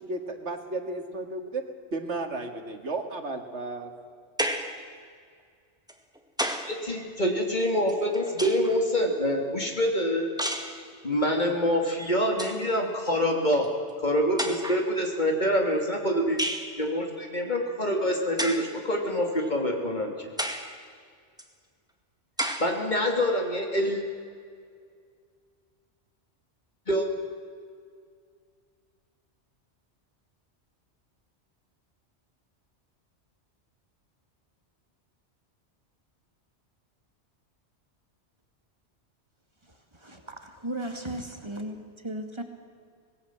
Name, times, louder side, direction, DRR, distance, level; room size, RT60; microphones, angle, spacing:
voice 1, 0.0-1.6 1.9-3.9, right 2 dB, 80° right, 5 dB, 2.2 m, -33 dB
sound 1, 4.4-4.8 5.9-6.8 7.9-8.8 10.4-10.8 11.9-12.0 12.3-12.6 13.6-13.7 14.4-14.9 16.4-16.7 18.4-18.7 19.4-19.5 20.4-20.7 21.4-21.5 22.4-22.7, equal, 5° right, 1.8 m, -31 dB
voice 2, 6.6-10.3 11.0-13.7 14.0-16.4 16.8-20.3 22.6-24.0 26.9-27.1, equal, 40° left, 2 dB, 3.2 m, -26 dB
voice 3, 40.0-42.4, right 1 dB, 25° right, 4 dB, 2.3 m, -36 dB
25.5 x 19.5 x 7.6 m, 2.1 s
omnidirectional pair, 1.2 m